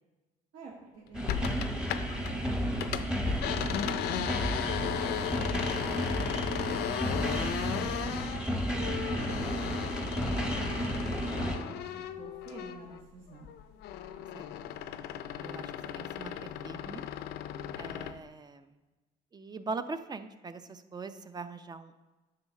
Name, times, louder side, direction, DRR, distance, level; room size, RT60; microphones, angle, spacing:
voice 1, 0.5-2.7 3.4-5.3 6.7-8.6 9.5-13.5, right 3 dB, 75° right, -4 dB, 1.6 m, -49 dB
sound 1, 1.1-11.6, equal, 5° right, 1.0 m, -32 dB
sound 2, 1.3-2.3 2.6-13.0 13.3-18.2, left 10 dB, 75° left, 0.5 m, -36 dB
voice 2, 14.1-14.7 15.4-17.0 17.8-18.7 19.3-22.0, right 4 dB, 25° right, 11 dB, 0.5 m, -42 dB
9.7 x 3.9 x 6.3 m, 1.2 s
cardioid pair, 110°, 17 cm